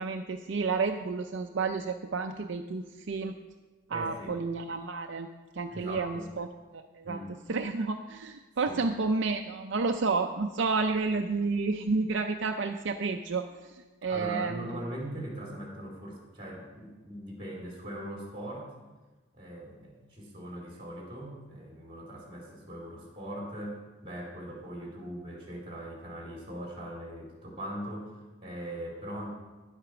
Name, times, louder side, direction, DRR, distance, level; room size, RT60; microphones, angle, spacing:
voice 1, 0.0-3.3 3.9-5.3 5.5-6.5 6.7-7.2 7.5-14.7, right 4 dB, 65° right, 5 dB, 0.5 m, -31 dB
voice 2, 3.9-4.4 5.7-6.3 7.0-7.3 8.7-8.8 14.1-18.7 19.3-29.3, right 1 dB, 30° right, -2 dB, 3.1 m, -40 dB
10.5 x 8.2 x 5.9 m, 1.2 s
head